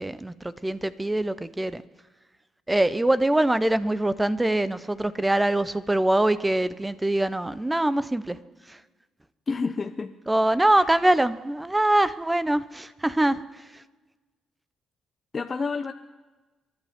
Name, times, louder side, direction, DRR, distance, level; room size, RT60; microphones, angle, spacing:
voice 1, 0.0-1.8 2.7-8.4 8.7-8.8 10.3-13.8, right 1 dB, 10° right, 15 dB, 0.7 m, -23 dB
voice 2, 9.5-10.1 10.8-10.9 15.3-15.9, left 4 dB, 35° left, 8 dB, 0.5 m, -29 dB
27.0 x 12.0 x 3.6 m, 1.2 s
cardioid pair, 90°, 0 cm